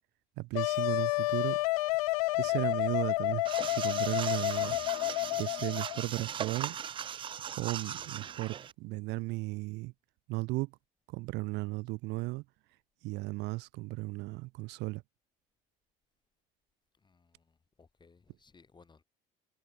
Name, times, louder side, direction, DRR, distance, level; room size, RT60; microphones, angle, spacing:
voice 1, 0.4-1.6 2.4-4.8 5.4-6.8 7.6-9.9 10.3-10.8 11.1-12.5 13.0-15.0, right 22 dB, 70° right, 1.8 m, -35 dB
Wind instrument woodwind instrument, 0.5-6.0, left 21 dB, 90° left, 0.6 m, -30 dB
sound 1, 3.4-8.7, right 9 dB, 30° right, 0.3 m, -39 dB
voice 2, 7.6-7.9 16.9-19.0, left 4 dB, 25° left, 6.6 m, -62 dB
supercardioid pair, 85°, 18 cm